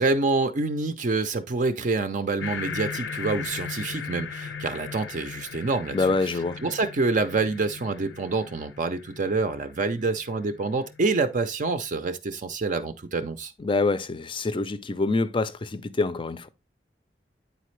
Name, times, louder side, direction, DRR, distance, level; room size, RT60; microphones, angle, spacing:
voice 1, 0.0-6.0 6.6-13.5, right 3 dB, 45° right, 0.5 m, -27 dB
sound 1, 2.4-11.3, left 6 dB, 75° left, 0.7 m, -38 dB
voice 2, 5.9-6.6 13.6-16.5, left 3 dB, 30° left, 0.5 m, -26 dB
9.2 x 4.1 x 3.1 m
head